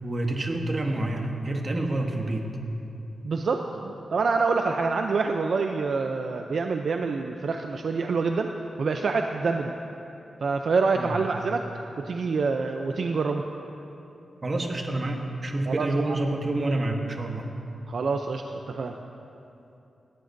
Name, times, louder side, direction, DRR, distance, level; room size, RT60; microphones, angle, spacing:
voice 1, 0.0-2.4 11.0-11.2 14.4-17.5, right 2 dB, 35° right, 3 dB, 1.1 m, -28 dB
voice 2, 3.2-8.5 8.8-9.7 10.4-11.7 12.0-13.4 15.7-16.2 17.9-19.0, right 4 dB, 60° right, 4 dB, 0.5 m, -26 dB
18.0 x 13.5 x 2.6 m, 2.8 s
wide cardioid pair, 135°, 0 cm